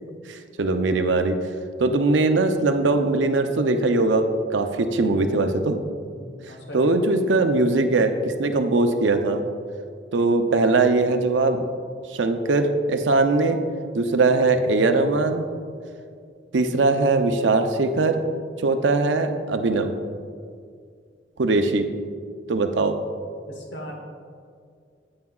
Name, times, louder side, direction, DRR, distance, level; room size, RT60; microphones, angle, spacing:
voice 1, 0.3-1.4 1.8-4.3 4.5-5.8 6.7-9.4 10.1-11.6 12.1-13.6 13.9-15.4 16.5-18.2 18.6-19.9 21.4-21.9 22.5-23.0, right 3 dB, 85° right, 7 dB, 0.6 m, -21 dB
voice 2, 6.1-6.9 23.5-23.9, equal, 65° left, 1 dB, 1.1 m, -39 dB
9.4 x 8.6 x 2.4 m, 2.2 s
head